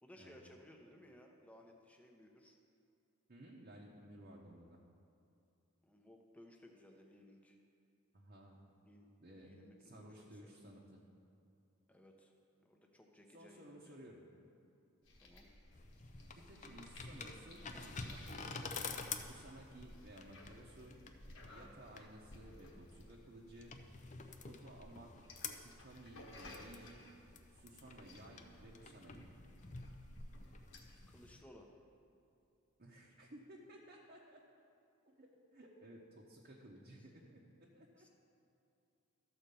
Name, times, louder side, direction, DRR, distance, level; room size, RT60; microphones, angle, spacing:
voice 1, 0.0-2.6 5.8-7.6 8.8-9.1 9.3-10.7 11.9-12.3 12.6-14.0 15.2-15.5 31.1-31.7 36.9-37.1 38.0-38.1, left 1 dB, 5° left, 1 dB, 0.9 m, -60 dB
voice 2, 3.3-4.8 8.1-8.7 9.2-9.5 9.8-11.0 13.3-14.2 16.5-18.9 19.2-21.0 21.4-23.7 24.4-25.1 25.5-27.1 27.5-29.2 32.8-34.4 35.1-38.1, right 1 dB, 45° right, -4 dB, 0.9 m, -56 dB
sound 1, 15.0-31.0, left 1 dB, 65° left, 1.3 m, -57 dB
sound 2, 15.7-31.4, left 4 dB, 35° left, 0.6 m, -50 dB
13.0 x 4.4 x 6.8 m, 2.6 s
head